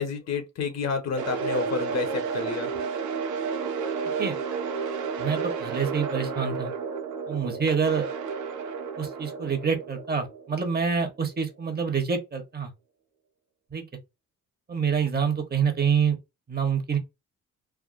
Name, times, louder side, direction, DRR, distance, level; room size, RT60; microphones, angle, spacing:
voice 1, 0.0-2.7, left 5 dB, 60° left, 1.1 m, -30 dB
sound 1, 1.2-11.2, right 5 dB, 80° right, 1.0 m, -32 dB
voice 2, 5.2-6.7 7.3-8.1 9.0-12.7 13.7-13.8 14.7-16.2 16.5-17.0, right 6 dB, 30° right, 1.1 m, -26 dB
3.5 x 2.2 x 2.5 m
cardioid pair, 90°, 30 cm